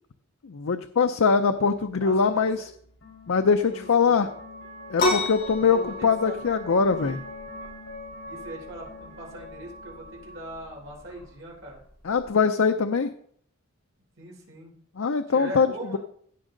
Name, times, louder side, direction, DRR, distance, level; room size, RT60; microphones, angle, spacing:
voice 1, 0.4-2.7 3.3-4.3 4.9-7.2 12.0-13.1 15.0-16.0, left 5 dB, 85° left, 7 dB, 0.6 m, -22 dB
sound 1, 1.5-11.9, left 1 dB, 70° left, 4.5 m, -44 dB
voice 2, 2.0-2.7 3.7-4.3 5.6-6.4 6.9-7.1 8.2-11.8 14.2-14.7 15.3-16.0, right 1 dB, 65° right, -1 dB, 3.8 m, -41 dB
sound 2, 5.0-12.4, left 2 dB, 45° left, 4.3 m, -32 dB
16.0 x 6.2 x 3.9 m, 0.63 s
head